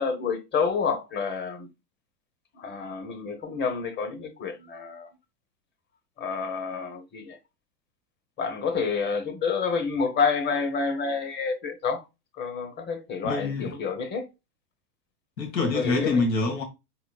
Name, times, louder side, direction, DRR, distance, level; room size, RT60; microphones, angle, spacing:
voice 1, 0.0-1.7 2.6-5.1 6.2-7.4 8.4-12.0 12.4-14.3 15.7-16.2, left 5 dB, 20° left, 1.0 m, -28 dB
voice 2, 13.2-13.7 15.4-16.6, left 3 dB, 90° left, 1.9 m, -25 dB
4.6 x 3.9 x 2.4 m
hypercardioid pair, 120°, 49 cm